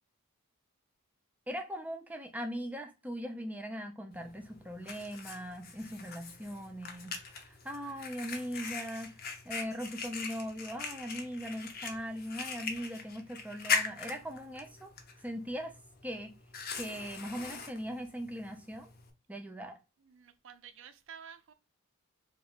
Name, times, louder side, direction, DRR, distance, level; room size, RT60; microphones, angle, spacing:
voice 1, 1.5-9.2 9.4-14.9 15.2-15.8 16.0-16.3 16.7-18.9 19.3-19.8, equal, 5° right, 0.4 m, -40 dB
Fire, 4.1-19.1, left 5 dB, 45° left, 0.7 m, -41 dB
voice 2, 20.0-21.5, right 7 dB, 60° right, 0.5 m, -51 dB
3.4 x 2.4 x 3.5 m
head